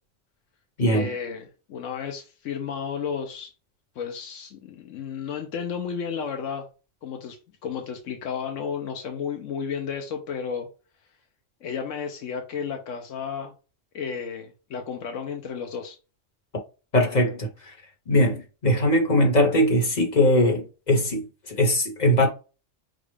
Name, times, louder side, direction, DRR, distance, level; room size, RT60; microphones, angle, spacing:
voice 1, 0.9-3.5 3.9-6.7 7.0-7.4 7.6-10.7 11.6-13.5 13.9-16.0, left 6 dB, 85° left, 1.1 m, -32 dB
voice 2, 16.9-17.7 18.1-22.3, left 1 dB, 35° left, 1.4 m, -21 dB
5.8 x 2.4 x 3.3 m
omnidirectional pair, 1.3 m